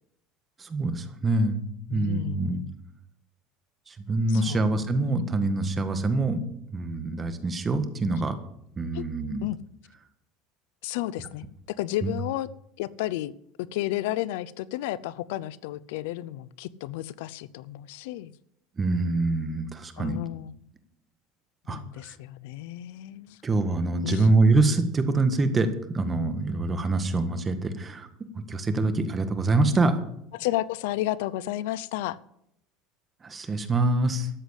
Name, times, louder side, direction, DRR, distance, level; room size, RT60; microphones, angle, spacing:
voice 1, 0.6-1.6 1.9-2.6 3.9-6.4 6.7-8.4 8.8-9.5 12.0-12.1 18.8-20.2 21.7-22.1 23.4-28.1 28.3-29.9 33.2-34.3, right 2 dB, 20° right, 9 dB, 1.6 m, -25 dB
voice 2, 1.9-2.7 4.3-4.8 8.9-9.1 9.4-9.6 10.8-12.5 12.8-13.3 13.7-18.3 20.0-20.5 21.7-23.4 24.0-24.3 30.3-32.2, left 15 dB, 85° left, 19 dB, 0.5 m, -32 dB
13.0 x 8.2 x 8.1 m, 0.75 s
cardioid pair, 135°, 0 cm